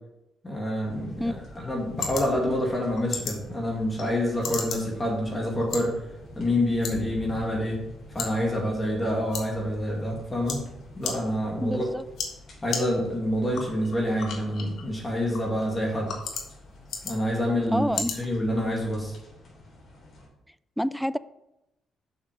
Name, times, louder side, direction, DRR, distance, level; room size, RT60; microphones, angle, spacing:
voice 1, 0.4-5.9 6.4-7.8 8.1-10.6 10.9-11.9 12.6-16.1 17.0-19.1, left 1 dB, 20° left, -1 dB, 2.2 m, -27 dB
sound 1, 0.8-20.3, left 1 dB, 50° left, 3.4 m, -47 dB
sound 2, 1.1-19.1, left 5 dB, 70° left, 1.5 m, -39 dB
voice 2, 11.6-12.0 17.7-18.1 20.8-21.2, equal, ahead, 16 dB, 0.3 m, -27 dB
6.6 x 6.0 x 5.1 m, 0.89 s
cardioid pair, 90°, 0 cm